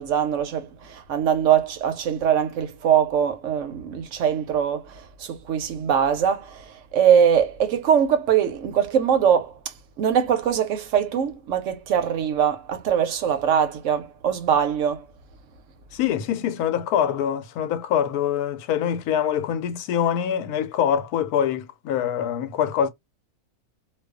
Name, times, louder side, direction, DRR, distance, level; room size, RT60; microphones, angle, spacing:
voice 1, 0.0-9.5 10.0-15.0, right 8 dB, 70° right, 0.8 m, -22 dB
voice 2, 15.9-22.9, left 9 dB, 80° left, 1.1 m, -24 dB
2.5 x 2.2 x 2.2 m
omnidirectional pair, 1.6 m